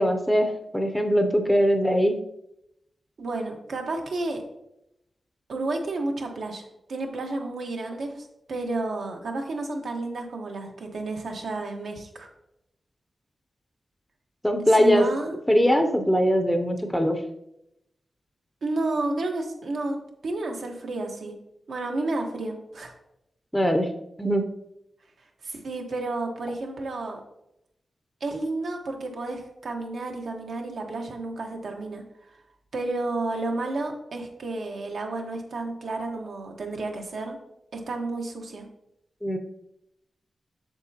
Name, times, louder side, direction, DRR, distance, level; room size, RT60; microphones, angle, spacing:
voice 1, 0.0-2.2 14.4-15.1 15.5-17.2 23.5-23.9 24.2-24.4 39.2-39.4, equal, 5° left, 5 dB, 0.6 m, -21 dB
voice 2, 3.2-4.4 5.5-6.6 6.9-12.3 14.7-15.4 18.6-21.4 21.7-22.9 25.4-27.2 28.2-32.0 32.7-37.4 37.7-38.7, right 2 dB, 70° right, 2 dB, 1.2 m, -31 dB
7.9 x 6.8 x 2.8 m, 0.82 s
wide cardioid pair, 165°, 0 cm